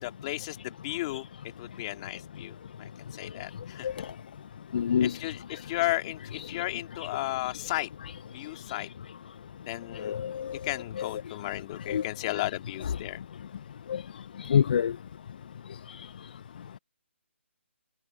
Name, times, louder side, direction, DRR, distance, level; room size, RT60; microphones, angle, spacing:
voice 1, 0.0-4.0 5.0-7.9 8.3-8.9 9.6-10.2 10.6-13.2, left 18 dB, 25° left, 2.9 m, -34 dB
voice 2, 4.7-5.1 6.3-6.5 10.0-10.5 11.0-11.1 11.9-12.0 13.9-14.0 14.4-14.9, left 8 dB, 45° left, 1.0 m, -26 dB
figure-of-eight pair, 150°, 7 cm